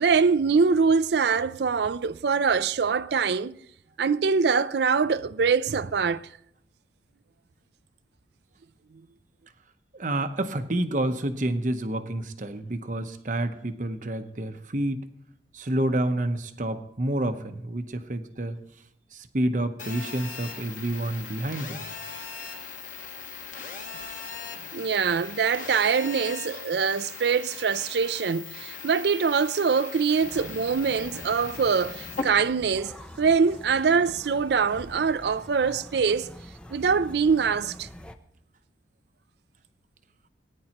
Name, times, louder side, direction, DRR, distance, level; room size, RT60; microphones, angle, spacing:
voice 1, 0.0-3.5 4.0-6.3 24.7-32.9 33.2-36.3 36.7-37.9, right 5 dB, 65° right, 0.4 m, -24 dB
voice 2, 9.9-15.0 15.5-18.6 19.1-21.8, right 1 dB, 45° right, 0.8 m, -29 dB
Telephone, 19.8-32.2, left 5 dB, 45° left, 1.4 m, -39 dB
sound 1, 30.2-38.1, equal, 5° left, 0.5 m, -45 dB
18.5 x 10.0 x 3.0 m
head